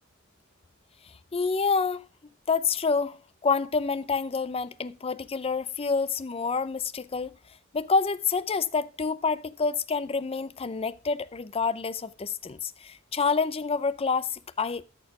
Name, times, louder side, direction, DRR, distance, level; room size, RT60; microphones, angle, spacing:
voice 1, 1.3-2.0 2.5-3.2 3.4-7.3 7.7-14.8, left 5 dB, 30° left, 0.5 m, -28 dB
13.0 x 4.5 x 4.7 m
head